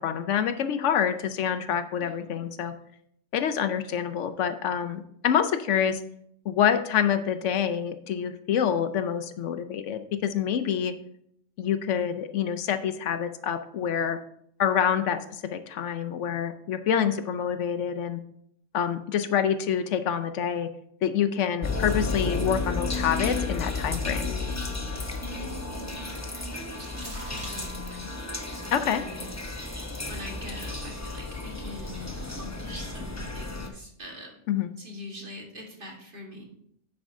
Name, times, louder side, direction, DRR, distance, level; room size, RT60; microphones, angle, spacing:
voice 1, 0.0-2.7 3.3-6.0 6.5-10.9 11.6-14.2 14.6-18.2 18.7-20.7 21.0-24.3 28.7-29.0 34.5-34.7, left 8 dB, 75° left, 10 dB, 0.9 m, -27 dB
voice 2, 1.9-2.5 25.2-34.4 34.8-36.5, left 1 dB, 45° right, 0 dB, 1.8 m, -44 dB
sound 1, 21.6-33.7, left 3 dB, 15° left, 0.6 m, -32 dB
sound 2, 21.8-27.7, right 1 dB, 80° right, 3.5 m, -49 dB
9.5 x 7.8 x 2.6 m, 0.70 s
omnidirectional pair, 1.3 m